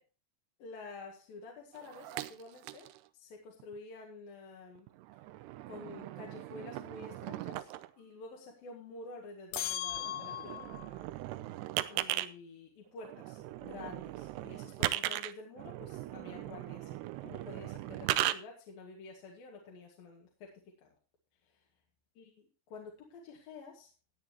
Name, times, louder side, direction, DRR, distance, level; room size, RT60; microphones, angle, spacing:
voice 1, 0.6-4.9 5.7-7.7 8.0-10.6 11.9-20.9 21.4-21.7 22.2-23.9, left 3 dB, 60° left, -1 dB, 3.4 m, -49 dB
sound 1, 1.7-3.0 3.6-3.8 4.8-7.9 9.6-9.7 9.9-12.3 13.0-18.4, right 15 dB, 80° right, 2.7 m, -38 dB
sound 2, 9.5-10.9, left 12 dB, 80° left, 2.2 m, -38 dB
16.5 x 9.5 x 3.0 m, 0.34 s
omnidirectional pair, 4.9 m